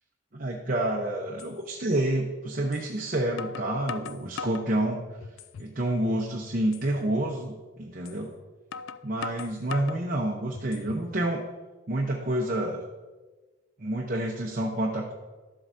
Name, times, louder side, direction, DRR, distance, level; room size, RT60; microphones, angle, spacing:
voice 1, 0.3-5.0 5.6-8.3 9.0-11.4 11.9-12.8 13.8-15.1, right 1 dB, 45° right, 0 dB, 0.8 m, -28 dB
sound 1, 1.4-1.5 2.7-2.9 3.4-4.7 5.2-5.7 6.1-6.2 6.7-6.9 8.0-8.2 8.7-10.0 10.5-11.1, left 6 dB, 80° left, 0.4 m, -39 dB
12.5 x 7.7 x 2.7 m, 1.3 s
head